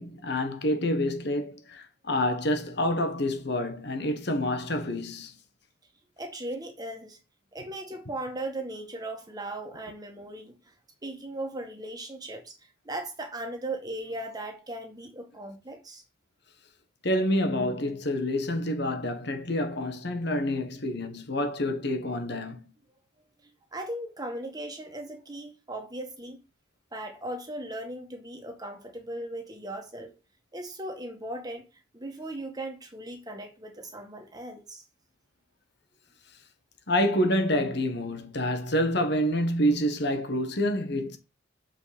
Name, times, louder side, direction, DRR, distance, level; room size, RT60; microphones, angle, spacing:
voice 1, 0.0-5.3 17.0-22.6 36.9-41.2, left 1 dB, 60° left, 1.5 m, -27 dB
voice 2, 6.2-7.2 7.5-10.7 11.0-16.0 23.4-26.4 26.9-30.2 30.5-31.6 31.9-34.8, right 1 dB, 20° right, 1.9 m, -38 dB
7.4 x 5.8 x 5.2 m
head